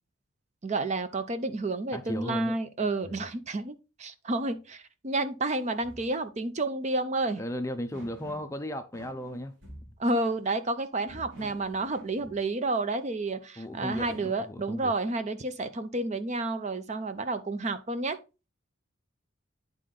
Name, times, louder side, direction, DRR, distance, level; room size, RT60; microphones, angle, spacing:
voice 1, 0.6-7.4 10.0-18.2, right 2 dB, 35° right, 0.5 m, -30 dB
voice 2, 1.9-2.6 3.1-3.2 7.4-9.5 13.6-14.9, left 1 dB, 15° left, 0.5 m, -36 dB
sound 1, 5.6-6.1 7.1-7.2 7.9-8.6 8.9-10.0 11.0-12.5 13.6-14.4, right 1 dB, 60° right, 2.6 m, -49 dB
9.7 x 3.7 x 3.8 m
head